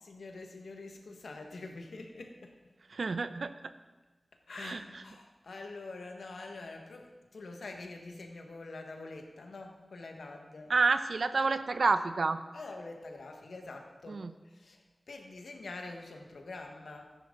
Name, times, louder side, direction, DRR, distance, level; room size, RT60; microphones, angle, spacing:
voice 1, 0.0-2.6 4.5-10.7 12.5-17.1, left 3 dB, 90° left, 3 dB, 1.5 m, -45 dB
voice 2, 2.9-3.7 4.6-4.8 10.7-12.4 14.1-14.3, right 4 dB, 75° right, 11 dB, 0.6 m, -29 dB
14.0 x 10.0 x 3.8 m, 1.2 s
wide cardioid pair, 60°, 0 cm